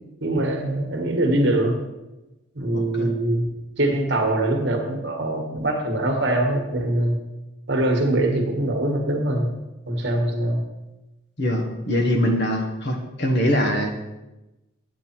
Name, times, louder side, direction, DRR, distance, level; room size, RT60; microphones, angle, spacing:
voice 1, 0.2-1.8 2.5-3.5 3.8-7.2 7.7-9.5 9.9-10.6, right 1 dB, 55° right, 2 dB, 1.5 m, -23 dB
voice 2, 2.7-3.1 11.4-13.9, equal, 55° left, 3 dB, 1.4 m, -23 dB
8.6 x 8.1 x 4.5 m, 1.0 s
head